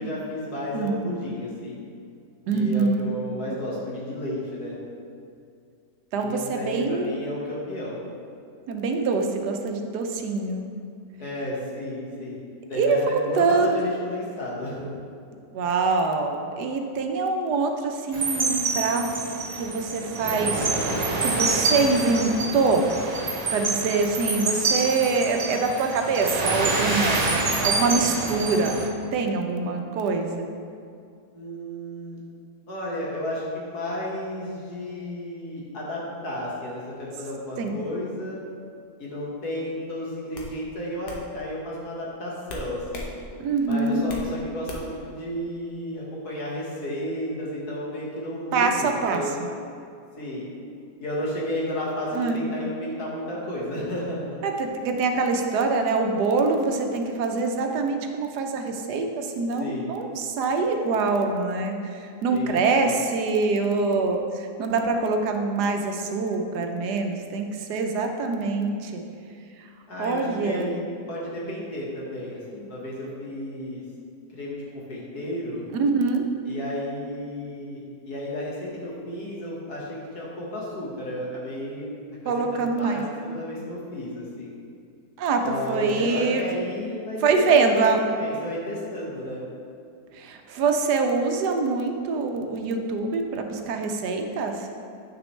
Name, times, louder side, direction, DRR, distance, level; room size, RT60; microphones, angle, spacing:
voice 1, 0.0-1.8 2.5-4.8 6.2-8.0 11.2-12.3 12.7-14.9 29.6-29.8 31.3-32.2 32.7-38.4 39.0-43.1 43.7-49.4 50.2-50.5 51.0-54.4 59.6-59.9 62.3-63.0 69.9-70.8 71.1-73.8 74.3-75.6 76.5-81.9 82.2-84.5 85.4-89.4, left 1 dB, 75° left, -5 dB, 2.0 m, -32 dB
voice 2, 0.7-1.1 2.5-3.0 6.1-7.1 8.7-10.7 12.7-13.9 15.5-19.3 19.6-20.7 21.0-22.9 23.5-28.8 29.1-30.5 37.6-37.8 43.4-44.1 48.5-49.2 52.1-52.4 54.4-69.0 70.0-70.7 75.7-76.2 82.2-83.0 85.2-86.6 87.2-88.1 90.1-94.7, right 4 dB, 85° right, 4 dB, 1.3 m, -24 dB
sound 1, 18.1-28.9, right 3 dB, 60° right, 0.4 m, -26 dB
sound 2, 39.6-39.8 40.3-40.5 41.1-41.2 42.5-43.1 43.5-44.3 44.7-45.0, left 1 dB, 90° left, 1.5 m, -37 dB
8.5 x 6.1 x 3.2 m, 2.4 s
omnidirectional pair, 1.7 m